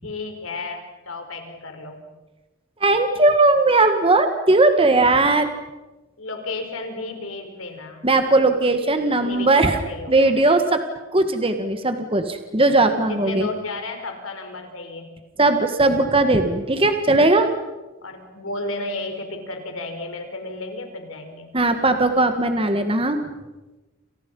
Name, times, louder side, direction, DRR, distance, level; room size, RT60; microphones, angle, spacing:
voice 1, 0.0-2.0 6.2-8.0 9.0-10.3 13.1-15.1 18.0-21.5, left 2 dB, 70° left, 5 dB, 4.9 m, -33 dB
voice 2, 2.8-5.5 8.0-9.8 10.1-10.8 11.1-13.5 15.4-17.5 21.5-23.2, right 2 dB, 25° right, 7 dB, 1.8 m, -18 dB
29.5 x 28.5 x 5.6 m, 1.1 s
head